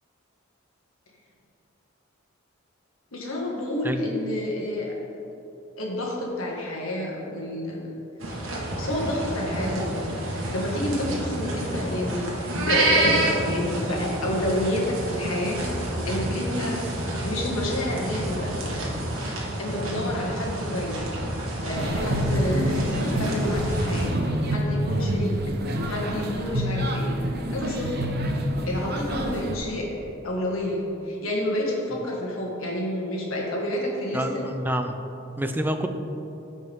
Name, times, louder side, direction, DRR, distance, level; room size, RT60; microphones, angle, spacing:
voice 1, 3.1-4.9 5.8-8.0 8.8-10.0 10.3-15.6 16.0-16.8 17.2-18.8 19.3-21.1 21.6-24.1 24.5-25.3 25.8-27.1 27.5-28.1 28.7-34.4, left 1 dB, 85° left, -3 dB, 1.9 m, -29 dB
sound 1, 8.2-24.1, right 1 dB, 75° right, 1.6 m, -29 dB
sound 2, 21.8-29.6, equal, 50° right, 0.9 m, -27 dB
voice 2, 34.1-35.0 35.4-35.9, right 1 dB, 10° right, 6 dB, 0.5 m, -27 dB
15.0 x 5.3 x 3.7 m, 3.0 s
head